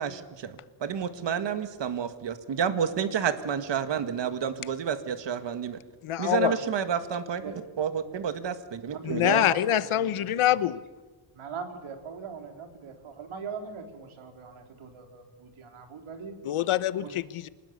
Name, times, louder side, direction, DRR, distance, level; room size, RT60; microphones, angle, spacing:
voice 1, 0.0-5.8 6.2-7.4 7.8-9.5, right 7 dB, 60° right, 10 dB, 1.9 m, -30 dB
voice 2, 6.0-6.5 9.0-10.8 16.4-17.5, left 12 dB, 85° left, 16 dB, 1.1 m, -25 dB
voice 3, 8.9-10.5 11.3-16.3 17.0-17.2, right 6 dB, 80° right, 5 dB, 4.0 m, -40 dB
25.5 x 20.0 x 8.4 m, 1.2 s
wide cardioid pair, 145°, 49 cm